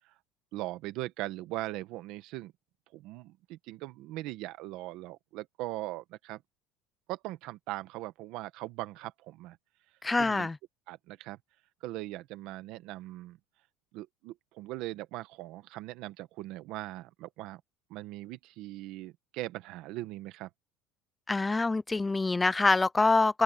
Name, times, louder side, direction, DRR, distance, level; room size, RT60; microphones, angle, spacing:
voice 1, 0.5-2.5 2.9-6.4 7.1-9.6 10.2-10.5 10.9-11.4 11.8-13.4 13.9-17.6 17.9-20.5, right 17 dB, 55° right, 1.4 m, -40 dB
voice 2, 10.0-10.6 21.3-23.4, left 3 dB, 10° left, 0.5 m, -25 dB
open air
cardioid pair, 170°, 0 cm